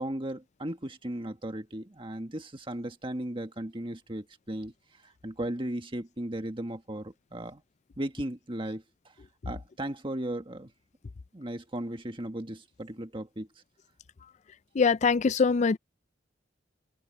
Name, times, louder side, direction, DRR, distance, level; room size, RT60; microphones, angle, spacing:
voice 1, 0.0-4.7 5.2-7.6 8.0-8.8 9.4-10.7 11.3-13.5, right 1 dB, 25° right, 1.6 m, -36 dB
voice 2, 14.8-15.8, left 5 dB, 40° left, 0.4 m, -23 dB
head